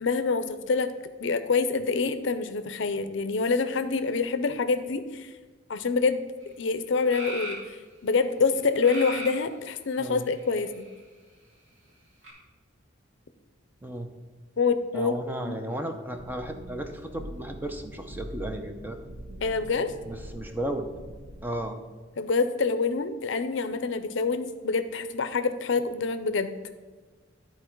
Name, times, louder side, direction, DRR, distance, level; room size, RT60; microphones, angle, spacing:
voice 1, 0.0-0.9 1.2-5.3 5.7-6.2 6.6-7.8 8.0-10.8 14.6-15.1 15.4-15.6 19.4-19.9 22.2-26.6, left 4 dB, 65° left, 11 dB, 0.5 m, -26 dB
sound 1, 6.4-6.5 7.1-7.7 8.8-9.4 10.3-10.9 12.2-12.3, equal, 90° right, 2.6 m, -37 dB
voice 2, 14.9-19.0 20.1-20.9 21.4-21.8, right 1 dB, 10° right, 5 dB, 0.6 m, -34 dB
sound 2, 16.1-21.7, equal, 65° right, 0.8 m, -43 dB
11.0 x 4.4 x 4.5 m, 1.4 s
head